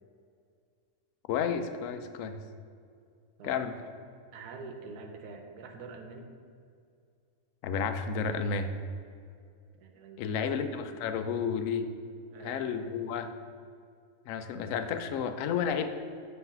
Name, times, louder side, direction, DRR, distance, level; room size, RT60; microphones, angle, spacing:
voice 1, 1.3-2.4 3.4-3.7 7.6-8.7 10.2-11.9 12.4-13.3 14.3-15.9, left 6 dB, 70° left, 8 dB, 0.9 m, -31 dB
voice 2, 4.3-6.3 9.8-10.6 12.3-12.7, right 4 dB, 85° right, 4 dB, 1.2 m, -45 dB
7.7 x 3.3 x 5.8 m, 2.3 s
omnidirectional pair, 1.6 m